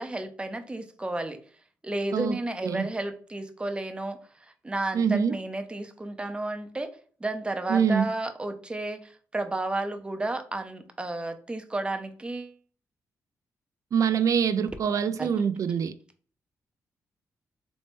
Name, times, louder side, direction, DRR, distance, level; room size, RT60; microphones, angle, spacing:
voice 1, 0.0-1.4 1.8-4.2 4.6-6.9 7.2-12.5 15.2-15.3, right 2 dB, 15° right, 0.6 m, -32 dB
voice 2, 4.9-5.4 7.7-8.1 13.9-15.9, right 7 dB, 55° right, 0.3 m, -24 dB
3.1 x 3.1 x 3.0 m
supercardioid pair, 55°, 7 cm